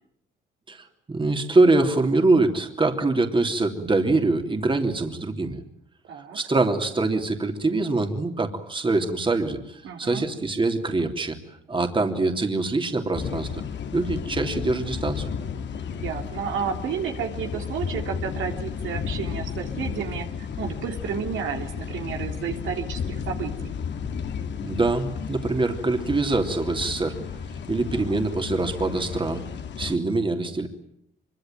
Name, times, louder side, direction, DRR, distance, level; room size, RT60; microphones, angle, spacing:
voice 1, 0.7-5.6 6.3-11.4 11.7-13.6 13.9-15.3 24.6-27.2 27.7-29.4 29.8-30.7, right 3 dB, 25° right, 4 dB, 3.1 m, -24 dB
voice 2, 9.8-10.3 15.9-23.7 27.9-28.2, right 7 dB, 80° right, 3 dB, 3.3 m, -32 dB
sound 1, 13.1-30.0, left 6 dB, 65° left, 2.2 m, -33 dB
25.0 x 23.5 x 9.2 m, 0.73 s
cardioid pair, 90°, 20 cm